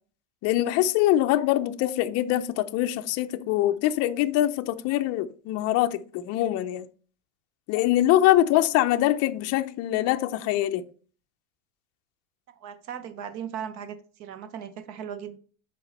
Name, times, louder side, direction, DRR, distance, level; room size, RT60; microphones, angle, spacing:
voice 1, 0.4-6.9 7.7-10.8, left 14 dB, 45° left, 0.5 m, -23 dB
voice 2, 12.5-15.4, right 8 dB, 45° right, 0.9 m, -38 dB
6.8 x 4.7 x 4.1 m
supercardioid pair, 135°, 37 cm